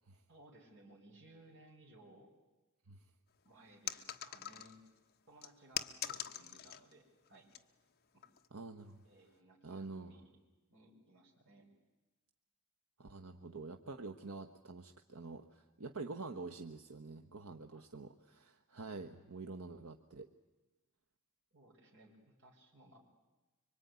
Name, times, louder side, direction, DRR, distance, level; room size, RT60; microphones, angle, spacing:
voice 1, 0.3-2.3 3.4-4.8 5.3-7.5 8.1-8.2 9.0-10.4 10.7-11.7 17.7-17.9 21.5-23.0, right 2 dB, 60° right, -2 dB, 5.8 m, -61 dB
sound 1, 3.9-4.9 5.4-6.9 7.3-7.6 8.2-8.5, left 10 dB, 45° left, 1.3 m, -43 dB
voice 2, 8.5-9.0 9.6-10.2 13.0-20.3, right 3 dB, 80° right, 5 dB, 1.2 m, -47 dB
25.5 x 24.5 x 9.6 m, 1.1 s
head